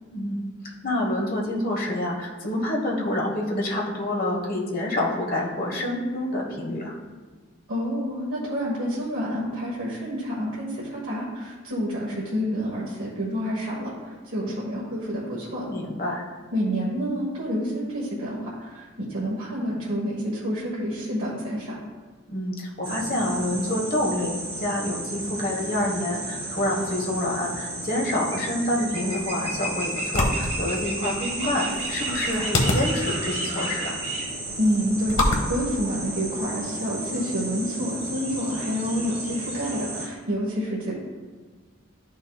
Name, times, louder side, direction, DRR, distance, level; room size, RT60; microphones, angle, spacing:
voice 1, 0.1-0.4 0.8-7.0 15.7-16.3 22.3-34.0, left 1 dB, 45° left, -1 dB, 1.3 m, -27 dB
voice 2, 7.7-15.7 16.5-21.7 34.6-40.9, equal, 80° right, -6 dB, 1.4 m, -28 dB
sound 1, 22.8-40.1, right 1 dB, 30° right, 1.5 m, -32 dB
sound 2, 29.0-36.6, left 1 dB, 75° left, 1.0 m, -29 dB
11.5 x 5.5 x 2.3 m, 1.4 s
head